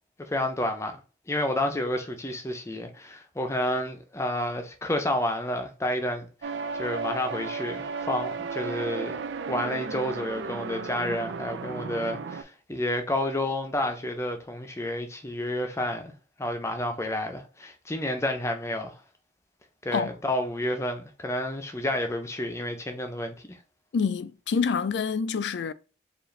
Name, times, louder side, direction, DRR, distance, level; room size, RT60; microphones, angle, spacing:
voice 1, 0.3-1.0 1.3-9.2 9.5-16.1 16.4-18.9 19.8-23.6, left 1 dB, 15° left, 0.5 m, -30 dB
sound 1, 6.4-12.4, right 5 dB, 80° right, 0.4 m, -34 dB
voice 2, 23.9-25.7, left 5 dB, 75° left, 0.3 m, -27 dB
4.6 x 2.5 x 3.2 m
head